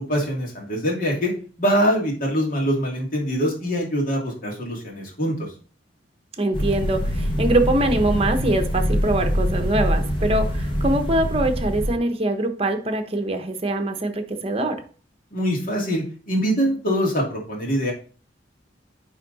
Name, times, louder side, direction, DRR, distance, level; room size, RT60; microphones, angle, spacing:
voice 1, 0.0-1.3 1.6-5.5 15.3-17.9, equal, 50° left, 2.5 m, -23 dB
voice 2, 6.4-14.8, right 1 dB, 30° right, 0.9 m, -23 dB
sound 1, 6.5-11.9, equal, 30° left, 1.4 m, -24 dB
9.3 x 3.7 x 4.0 m
head